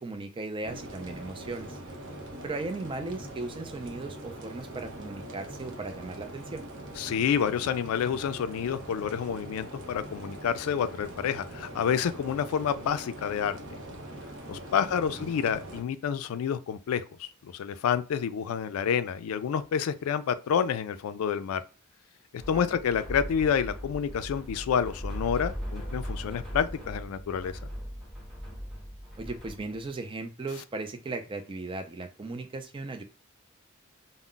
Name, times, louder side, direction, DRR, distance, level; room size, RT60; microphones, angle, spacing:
voice 1, 0.0-1.8 2.4-6.6 15.1-15.3 22.5-22.6 29.2-33.0, right 3 dB, 25° right, 0.4 m, -37 dB
sound 1, 0.6-15.8, right 1 dB, 60° right, 0.7 m, -42 dB
voice 2, 7.0-13.6 14.5-21.6 22.5-27.6, left 7 dB, 70° left, 0.3 m, -29 dB
sound 2, 22.4-29.9, equal, ahead, 0.8 m, -39 dB
2.2 x 2.0 x 3.7 m
head